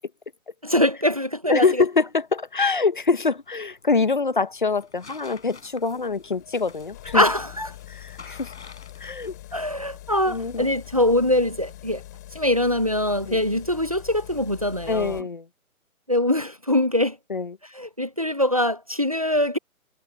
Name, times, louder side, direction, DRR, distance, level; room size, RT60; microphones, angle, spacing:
voice 1, 0.6-1.7 7.1-7.7 9.5-12.0 12.3-15.3 16.1-17.2 17.7-19.6, left 1 dB, 25° right, 0.7 m, -23 dB
voice 2, 1.5-7.2 7.9-8.5 9.0-9.4 10.3-10.7 13.3-13.4 14.9-15.5 17.3-17.6, left 4 dB, 35° left, 1.2 m, -24 dB
sound 1, 1.6-13.8, left 4 dB, 50° left, 7.1 m, -51 dB
sound 2, 4.9-15.2, left 15 dB, 10° left, 3.8 m, -44 dB
hypercardioid pair, 175°, 44 cm